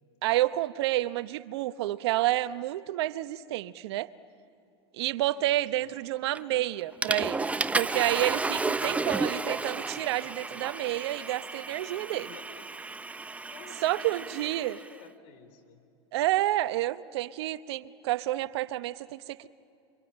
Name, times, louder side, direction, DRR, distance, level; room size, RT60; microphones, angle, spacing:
voice 1, 0.2-4.1 4.9-12.3 13.8-14.8 16.1-19.5, right 15 dB, 70° right, 15 dB, 0.9 m, -29 dB
voice 2, 5.3-5.9 8.9-9.3 12.1-12.7 13.5-15.8, left 5 dB, 55° left, 8 dB, 3.9 m, -52 dB
Water / Toilet flush, 6.3-6.6 7.0-14.9, right 3 dB, 10° right, 0.7 m, -33 dB
27.0 x 25.0 x 8.9 m, 2.6 s
hypercardioid pair, 105°, 14 cm